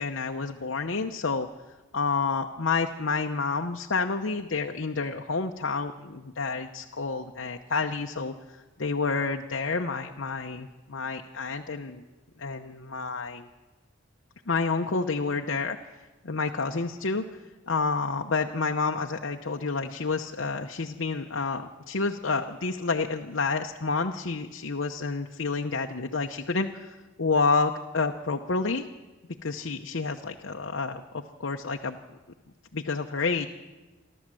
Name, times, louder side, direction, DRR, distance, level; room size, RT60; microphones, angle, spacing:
voice 1, 0.0-1.5 1.9-8.3 8.8-12.0 12.4-13.5 14.5-15.8 16.2-17.2 17.7-28.9 29.4-32.0 32.7-33.5, left 4 dB, 65° left, 3 dB, 0.9 m, -29 dB
28.5 x 12.0 x 7.6 m, 1.2 s
head